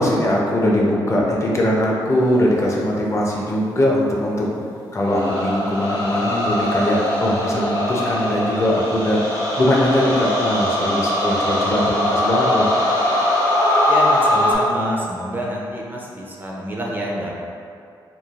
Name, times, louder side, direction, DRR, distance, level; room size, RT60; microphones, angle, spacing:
voice 1, 0.0-4.7 4.9-12.7, left 1 dB, 35° left, -3 dB, 0.5 m, -20 dB
sound 1, 5.0-14.5, left 1 dB, 85° left, 1.2 m, -21 dB
voice 2, 13.9-17.3, equal, 25° right, -3 dB, 0.4 m, -27 dB
3.0 x 2.2 x 2.3 m, 2.4 s
cardioid pair, 100°, 8 cm